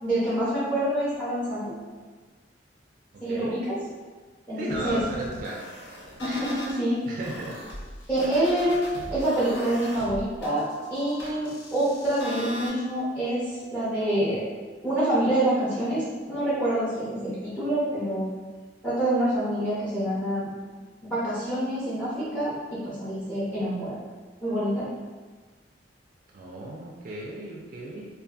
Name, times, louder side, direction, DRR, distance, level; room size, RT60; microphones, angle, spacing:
voice 1, 0.0-1.7 3.2-3.8 4.5-5.0 6.2-7.0 8.1-8.7 9.1-14.5 14.8-18.3 18.8-20.5 21.0-24.0 24.4-24.9, right 1 dB, 10° left, -11 dB, 0.5 m, -26 dB
voice 2, 3.1-3.5 4.6-5.6 7.1-7.6 26.3-28.1, right 2 dB, 45° right, -2 dB, 0.3 m, -35 dB
sound 1, 4.7-6.8 7.2-12.7, equal, 65° left, 0.6 m, -40 dB
2.6 x 2.3 x 2.3 m, 1.4 s
head